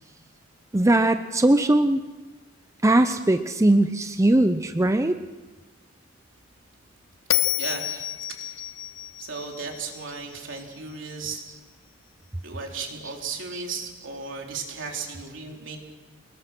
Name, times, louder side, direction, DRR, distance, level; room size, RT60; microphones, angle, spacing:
voice 1, 0.7-2.0 2.8-5.2 13.5-13.6, right 1 dB, 15° right, 9 dB, 0.6 m, -20 dB
Bell, 7.3-10.6, left 13 dB, 90° left, 1.0 m, -29 dB
voice 2, 7.6-8.7 9.2-11.4 12.4-15.8, right 4 dB, 70° right, 1 dB, 4.1 m, -35 dB
27.0 x 20.0 x 6.1 m, 1.2 s
head